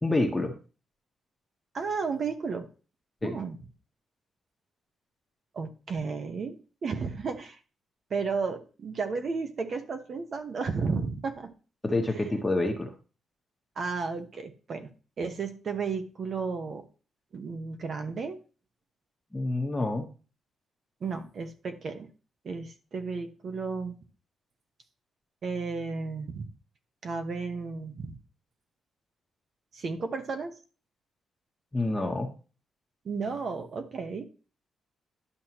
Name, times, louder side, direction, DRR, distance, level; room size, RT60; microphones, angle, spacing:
voice 1, 0.0-0.5 3.2-3.4 11.8-12.9 19.3-20.0 31.7-32.3, left 2 dB, 15° left, 2 dB, 1.1 m, -27 dB
voice 2, 1.7-2.7 3.2-3.6 5.5-7.6 8.1-11.5 13.8-14.9 15.2-16.8 17.3-18.4 21.0-22.1 22.4-24.0 25.4-26.4 27.0-28.2 29.7-30.5 33.0-34.2, right 4 dB, 50° right, 6 dB, 1.0 m, -33 dB
11.0 x 6.4 x 3.0 m, 0.35 s
cardioid pair, 120°, 0 cm